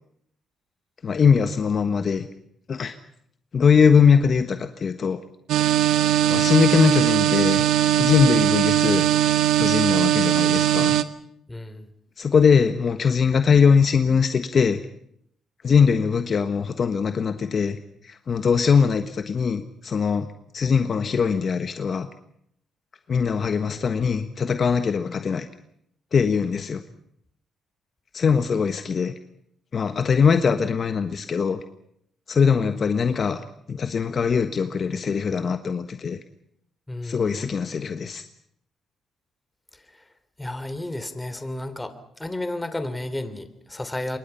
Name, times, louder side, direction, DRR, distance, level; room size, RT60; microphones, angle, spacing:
voice 1, 1.0-2.3 2.7-2.9 3.5-5.2 6.2-7.6 8.0-9.1 9.6-11.0 12.2-14.8 15.6-17.8 18.0-20.3 20.5-22.1 23.1-25.5 26.1-26.8 28.1-29.1 29.7-31.6 32.3-33.4 33.7-36.2 37.0-38.2, left 6 dB, 45° left, 9 dB, 1.4 m, -21 dB
sound 1, 5.5-11.0, right 12 dB, 85° right, 1.3 m, -20 dB
voice 2, 11.5-11.9 36.9-37.4 39.9-40.0 40.4-44.2, left 1 dB, 10° left, 11 dB, 3.2 m, -32 dB
27.5 x 23.5 x 5.8 m, 0.71 s
cardioid pair, 90°, 0 cm